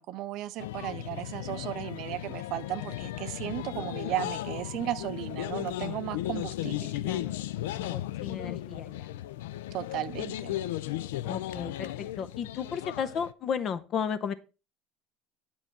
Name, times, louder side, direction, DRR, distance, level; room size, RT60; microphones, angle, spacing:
voice 1, 0.0-6.9 9.7-10.6, right 14 dB, 65° right, 0.6 m, -35 dB
sound 1, 0.6-13.3, left 14 dB, 85° left, 0.3 m, -36 dB
voice 2, 7.0-7.4 7.8-9.1 11.2-14.3, left 7 dB, 50° left, 0.7 m, -34 dB
8.9 x 5.5 x 4.6 m
hypercardioid pair, 80°, 0 cm